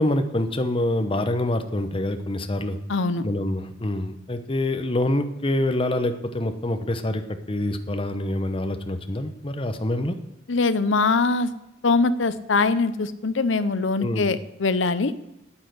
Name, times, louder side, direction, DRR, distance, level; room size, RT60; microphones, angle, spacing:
voice 1, 0.0-2.8 3.2-10.2 14.0-14.3, left 1 dB, 30° left, 7 dB, 0.9 m, -26 dB
voice 2, 2.9-3.2 10.5-11.5 11.8-15.1, left 3 dB, 70° left, 13 dB, 0.8 m, -22 dB
9.9 x 8.9 x 7.8 m, 0.86 s
head